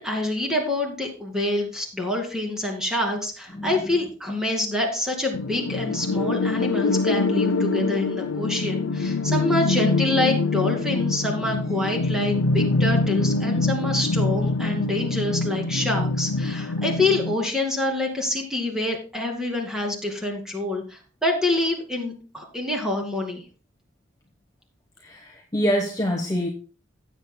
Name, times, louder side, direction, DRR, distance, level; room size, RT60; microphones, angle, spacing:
voice 1, 0.0-23.4, left 2 dB, 5° right, 2.3 m, -26 dB
sound 1, 5.3-17.3, left 3 dB, 85° left, 0.6 m, -24 dB
voice 2, 25.0-26.5, equal, 15° left, 1.1 m, -25 dB
16.0 x 8.1 x 2.2 m
head